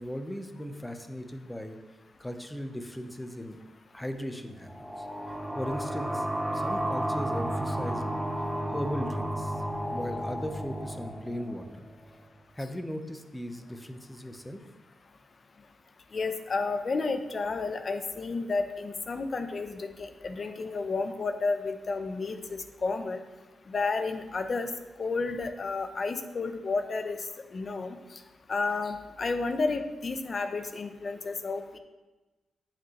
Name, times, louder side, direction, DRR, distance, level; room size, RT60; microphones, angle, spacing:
voice 1, 0.0-1.8 2.2-3.6 3.9-4.7 5.0-6.3 6.5-8.1 8.7-9.6 9.9-11.9 12.5-14.6, equal, 10° left, 6 dB, 1.0 m, -37 dB
sound 1, 4.6-12.1, right 1 dB, 10° right, 0.9 m, -32 dB
voice 2, 16.1-23.2 23.7-24.7 25.0-27.2 27.5-28.0 28.5-31.8, left 3 dB, 50° left, 8 dB, 0.9 m, -31 dB
8.9 x 7.4 x 3.2 m, 1.1 s
supercardioid pair, 55°, 0 cm